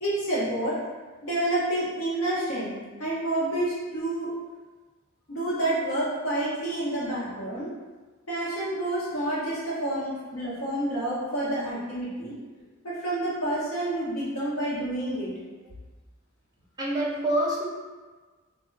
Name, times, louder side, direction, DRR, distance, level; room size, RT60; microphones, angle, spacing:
voice 1, 0.0-0.7 1.2-2.7 3.0-4.3 5.3-7.7 8.3-12.4 12.8-15.3, right 1 dB, 80° left, -8 dB, 1.1 m, -29 dB
voice 2, 16.8-17.6, right 1 dB, 20° right, -5 dB, 0.5 m, -26 dB
2.3 x 2.2 x 3.2 m, 1.3 s
head